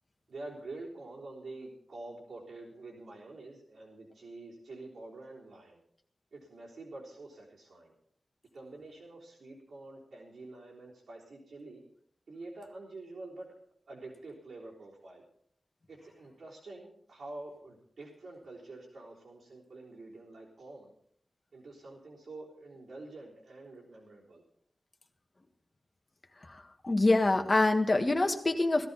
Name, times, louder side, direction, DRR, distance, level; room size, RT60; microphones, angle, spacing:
voice 1, 0.3-5.8 6.3-7.9 8.5-11.8 12.3-13.5 13.9-15.2 15.9-20.9 21.5-24.4, right 2 dB, 85° right, -4 dB, 3.7 m, -47 dB
voice 2, 26.5-28.9, left 2 dB, 30° left, 4 dB, 1.6 m, -26 dB
18.0 x 13.0 x 4.1 m, 0.67 s
wide cardioid pair, 125°, 0 cm